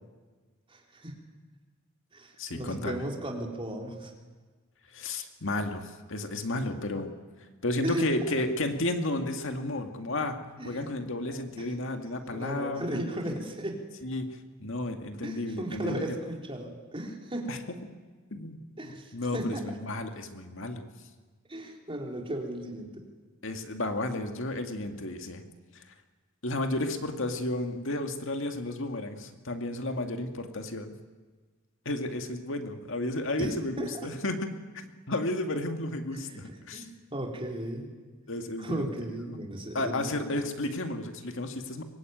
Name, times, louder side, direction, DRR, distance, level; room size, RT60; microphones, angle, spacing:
voice 1, 0.7-1.1 2.1-4.1 7.8-8.1 10.6-10.8 11.6-11.7 12.3-13.8 15.2-17.6 18.8-19.8 21.5-23.0 33.4-33.9 36.1-37.9 38.6-40.3, right 1 dB, 25° right, 1 dB, 3.7 m, -36 dB
voice 2, 2.4-3.0 4.9-7.1 7.6-10.4 10.6-13.0 14.0-16.2 17.5-17.6 18.3-20.8 23.4-25.4 25.7-25.8 26.4-30.9 31.9-34.5 35.1-36.9 38.3-38.9 39.3-39.4 39.7-41.8, left 1 dB, 65° left, 5 dB, 2.1 m, -32 dB
23.5 x 21.0 x 9.3 m, 1.4 s
head